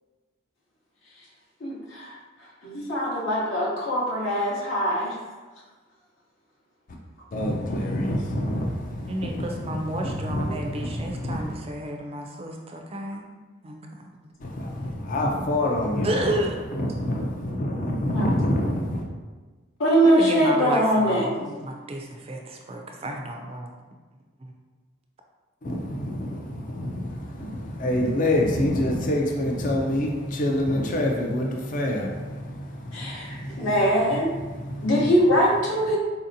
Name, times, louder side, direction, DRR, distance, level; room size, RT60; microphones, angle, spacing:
voice 1, 1.6-2.1 2.6-5.1 10.5-10.8 18.1-18.3 19.8-21.7 32.9-34.3 34.8-36.0, equal, 65° left, -5 dB, 0.8 m, -22 dB
voice 2, 7.3-11.6 14.4-16.4 16.7-19.1 25.6-33.8 34.1-35.0, left 1 dB, 40° left, 0 dB, 0.4 m, -27 dB
voice 3, 9.1-13.8 14.2-14.3 16.0-16.6 20.0-23.7 24.4-24.5 26.8-27.1, right 1 dB, 30° right, 2 dB, 0.4 m, -32 dB
4.1 x 2.8 x 2.6 m, 1.3 s
head